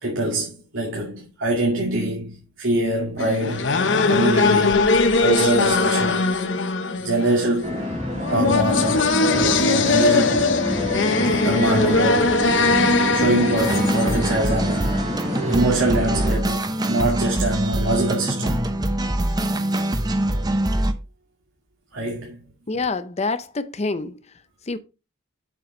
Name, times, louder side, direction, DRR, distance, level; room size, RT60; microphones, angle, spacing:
voice 1, 0.0-3.8 4.1-4.8 5.2-6.3 7.0-7.8 8.3-10.5 11.4-12.4 13.1-15.1 15.5-18.8 21.9-22.4, right 2 dB, 75° right, 2.4 m, -24 dB
sound 1, 3.2-15.1, left 3 dB, 60° left, 0.9 m, -20 dB
sound 2, 7.6-16.4, left 1 dB, 35° right, 3.9 m, -27 dB
sound 3, 13.6-20.9, right 1 dB, 20° right, 0.7 m, -24 dB
voice 2, 22.7-24.2 24.7-24.8, left 3 dB, 35° left, 0.6 m, -26 dB
7.5 x 6.9 x 3.8 m
head